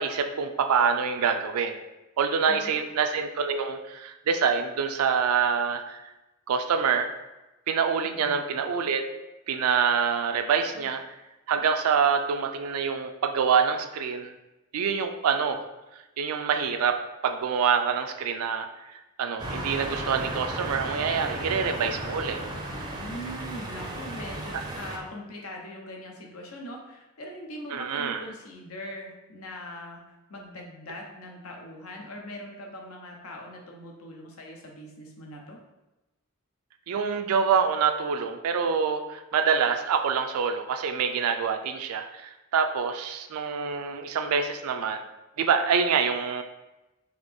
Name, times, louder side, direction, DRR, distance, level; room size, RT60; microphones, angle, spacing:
voice 1, 0.0-1.7 2.2-6.0 6.5-7.1 7.7-9.1 9.5-11.0 11.5-14.3 14.7-15.6 16.2-22.4 27.7-28.2 36.9-45.0 45.4-46.4, right 6 dB, 80° right, 6 dB, 0.4 m, -26 dB
voice 2, 2.5-2.8 8.0-8.4 10.7-10.9 22.9-35.6, left 1 dB, 80° left, 1 dB, 0.8 m, -41 dB
sound 1, 19.4-25.0, right 1 dB, 20° right, 0.4 m, -35 dB
3.9 x 2.8 x 3.5 m, 1.0 s
head